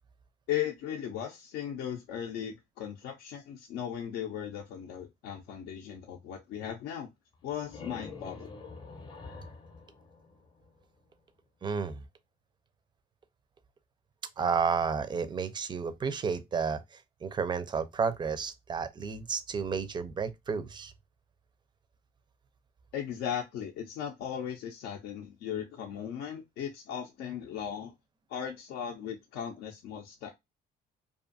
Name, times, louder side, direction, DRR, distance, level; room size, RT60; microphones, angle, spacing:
voice 1, 0.5-7.1 7.4-8.5 22.9-27.9 28.3-30.3, left 9 dB, 80° left, 0.5 m, -37 dB
sound 1, 7.3-11.0, left 4 dB, 25° left, 0.6 m, -47 dB
voice 2, 11.6-12.0 14.4-20.9, right 6 dB, 25° right, 0.4 m, -31 dB
2.5 x 2.3 x 2.5 m
cardioid pair, 110°, 17 cm